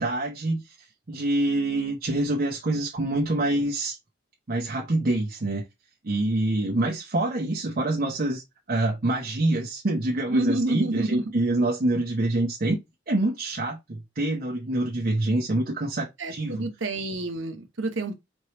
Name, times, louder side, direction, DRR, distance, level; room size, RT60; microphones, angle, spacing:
voice 1, 0.0-4.0 4.5-5.6 6.0-8.4 8.7-12.8 13.1-16.7, right 2 dB, 50° right, 0.7 m, -26 dB
voice 2, 10.3-11.2 16.2-18.1, right 2 dB, 70° right, 1.0 m, -28 dB
4.4 x 3.2 x 2.9 m
head